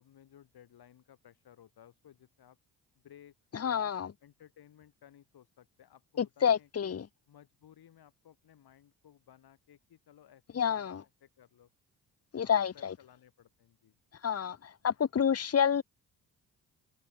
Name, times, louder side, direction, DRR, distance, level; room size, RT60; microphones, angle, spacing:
voice 1, 0.0-2.6 3.0-3.3 3.6-3.9 4.2-6.9 7.3-11.7 12.4-13.9, left 10 dB, 55° left, 5.8 m, -59 dB
voice 2, 3.5-4.1 6.2-7.1 10.5-11.0 12.3-12.9 14.2-15.8, left 8 dB, 35° left, 1.6 m, -29 dB
figure-of-eight pair, 45°, 45 cm